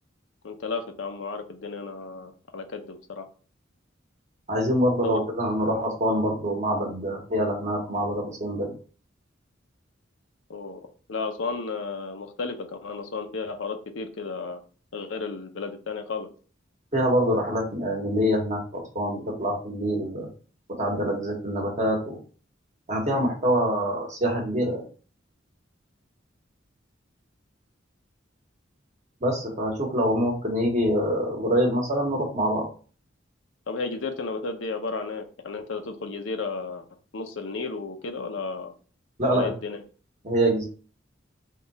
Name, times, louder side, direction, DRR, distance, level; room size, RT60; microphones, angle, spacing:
voice 1, 0.4-3.3 5.0-5.2 10.5-10.8 11.1-14.6 14.9-16.3 33.7-36.8 37.1-38.7 39.3-39.8, left 4 dB, 90° left, 6 dB, 0.6 m, -33 dB
voice 2, 4.5-8.7 16.9-20.3 20.7-22.2 22.9-24.8 29.2-32.7 39.2-39.5 40.2-40.6, equal, 40° right, 0 dB, 1.2 m, -25 dB
3.6 x 2.4 x 4.0 m, 0.39 s
head